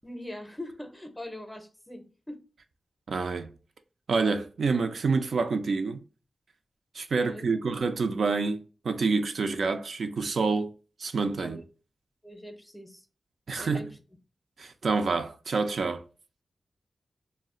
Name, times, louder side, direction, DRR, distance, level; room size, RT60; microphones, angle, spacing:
voice 1, 0.0-2.4 7.2-7.5 11.4-11.6 12.2-13.0 13.6-14.0, left 1 dB, 10° left, 0.6 m, -42 dB
voice 2, 3.1-3.5 4.1-6.0 7.0-10.7 11.0-11.6 13.5-13.9 14.6-16.0, right 4 dB, 70° right, 0.3 m, -27 dB
2.3 x 2.0 x 3.5 m
wide cardioid pair, 90°, 0 cm